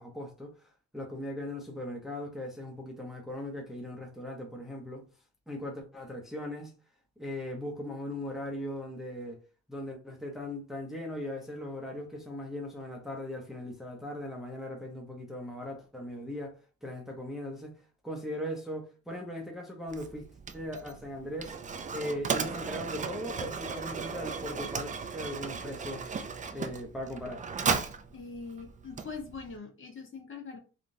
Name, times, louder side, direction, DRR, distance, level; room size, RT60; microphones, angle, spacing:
voice 1, 0.0-5.0 5.5-6.7 7.2-9.4 9.7-20.3 20.5-21.6 21.9-26.1 26.5-27.4, left 1 dB, ahead, 0.7 m, -39 dB
Mechanisms, 19.9-29.6, right 5 dB, 25° right, 0.4 m, -36 dB
voice 2, 28.1-30.6, left 4 dB, 40° left, 1.2 m, -42 dB
3.5 x 2.5 x 2.6 m
cardioid pair, 90°, 30 cm